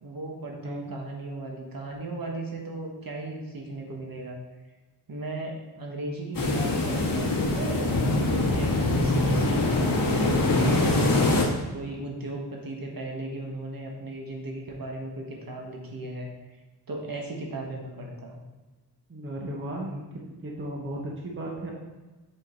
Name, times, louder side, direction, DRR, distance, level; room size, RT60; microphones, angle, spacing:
voice 1, 0.0-4.4 5.1-11.3 11.7-16.3 16.9-18.4, right 2 dB, 55° right, 0 dB, 1.4 m, -36 dB
sound 1, 6.3-11.4, left 2 dB, 50° left, 1.4 m, -23 dB
voice 2, 19.1-20.0 20.3-21.7, right 1 dB, 30° right, -2 dB, 1.1 m, -35 dB
7.6 x 5.0 x 3.9 m, 1.2 s
wide cardioid pair, 120°, 42 cm